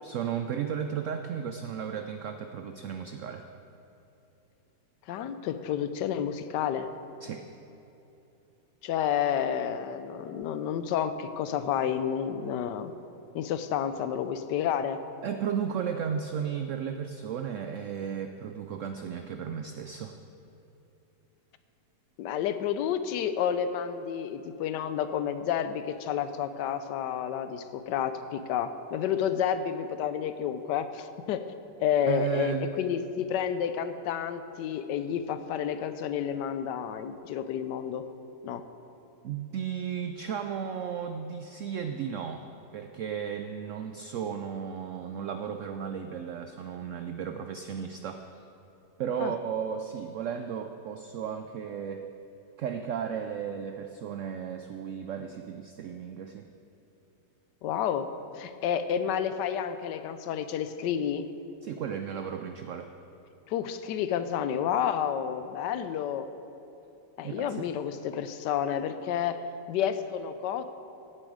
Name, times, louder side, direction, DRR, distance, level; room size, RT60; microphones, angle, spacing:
voice 1, 0.0-3.5 7.2-7.5 15.2-20.2 32.1-32.7 39.2-42.5 42.7-48.4 49.0-52.1 52.6-56.5 61.6-62.9 67.2-67.7, right 8 dB, 85° right, 7 dB, 0.6 m, -34 dB
voice 2, 5.1-6.9 8.8-12.9 13.3-15.0 22.2-31.4 31.8-38.0 38.4-38.6 49.2-49.3 57.6-58.1 58.3-61.3 63.5-66.3 67.2-70.6, left 9 dB, 80° left, 11 dB, 1.2 m, -30 dB
15.5 x 7.6 x 4.9 m, 2.9 s
omnidirectional pair, 1.9 m